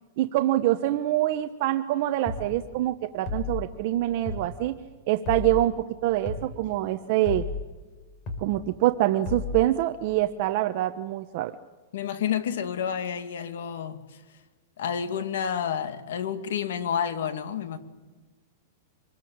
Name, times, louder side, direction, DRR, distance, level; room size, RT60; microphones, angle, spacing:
voice 1, 0.2-4.8 5.1-7.4 8.4-11.5, right 14 dB, 45° right, 8 dB, 1.0 m, -25 dB
sound 1, 2.3-2.5 3.2-3.6 4.3-4.5 5.2-5.6 6.3-6.5 7.2-7.6 8.3-8.5 9.2-9.6, left 4 dB, 30° left, 4.9 m, -32 dB
voice 2, 11.9-14.0 14.8-17.8, left 8 dB, 75° left, 10 dB, 2.1 m, -29 dB
26.0 x 21.0 x 8.8 m, 1.3 s
supercardioid pair, 165°, 0 cm